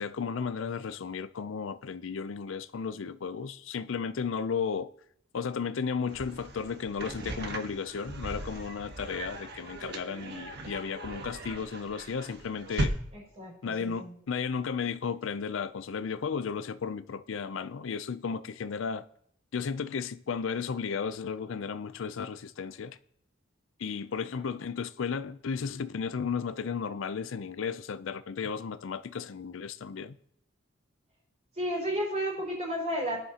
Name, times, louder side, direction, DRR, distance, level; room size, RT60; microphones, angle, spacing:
voice 1, 0.0-4.9 5.3-13.0 13.6-19.0 19.5-23.0 23.8-30.2, left 6 dB, 70° left, 0.5 m, -34 dB
sound 1, 6.1-12.9, right 1 dB, 55° right, 1.3 m, -38 dB
voice 2, 13.1-14.1 31.5-33.2, equal, 35° right, 4.6 m, -32 dB
18.0 x 10.5 x 2.9 m
head